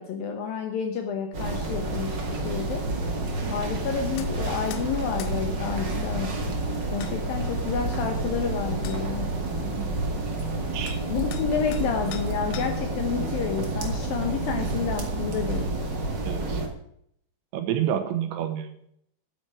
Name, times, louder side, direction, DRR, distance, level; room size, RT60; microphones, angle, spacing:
voice 1, 0.0-2.9 3.5-6.4 6.9-9.4 11.1-15.7, left 6 dB, 70° left, 6 dB, 2.3 m, -30 dB
sound 1, 1.3-16.7, right 2 dB, 40° right, 1.6 m, -29 dB
sound 2, 4.2-4.3 4.7-4.9 5.2-5.4 6.6-6.7 7.0-7.2 8.3-8.4 8.8-9.0 10.4-10.5 10.9-11.0 11.3-11.9 12.1-12.9, left 11 dB, 85° left, 3.3 m, -42 dB
voice 2, 9.6-10.0 10.4-11.0 16.3-16.6 17.5-18.7, right 10 dB, 80° right, 7 dB, 3.5 m, -29 dB
11.0 x 9.0 x 6.2 m, 0.70 s
omnidirectional pair, 5.3 m